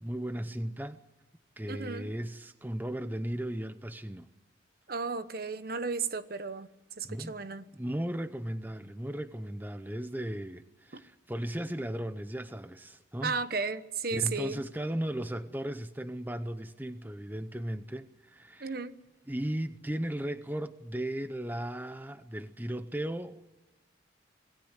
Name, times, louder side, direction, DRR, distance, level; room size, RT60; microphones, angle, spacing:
voice 1, 0.0-1.0 1.6-4.3 7.0-7.4 7.7-13.4 14.1-18.8 19.3-23.4, right 1 dB, 10° right, 0.7 m, -36 dB
voice 2, 1.7-2.1 4.9-6.7 7.0-7.6 10.9-11.0 13.2-14.6 18.6-18.9, right 4 dB, 50° right, 1.1 m, -34 dB
26.5 x 19.0 x 8.2 m
head